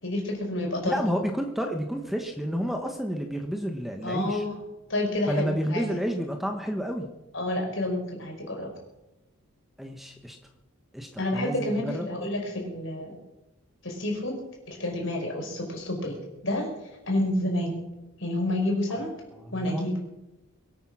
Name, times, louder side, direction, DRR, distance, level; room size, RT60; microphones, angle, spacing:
voice 1, 0.0-1.0 4.0-4.6 4.9-5.9 7.3-8.7 11.2-13.2 13.8-14.4 14.7-16.2 16.4-16.7 17.1-17.8 18.2-19.1 19.5-19.9, left 1 dB, 60° left, 1 dB, 5.1 m, -29 dB
voice 2, 0.9-4.4 5.3-7.1 9.8-10.4 10.9-12.1 19.4-19.8, equal, ahead, 4 dB, 1.1 m, -30 dB
23.0 x 9.1 x 6.1 m, 0.98 s
head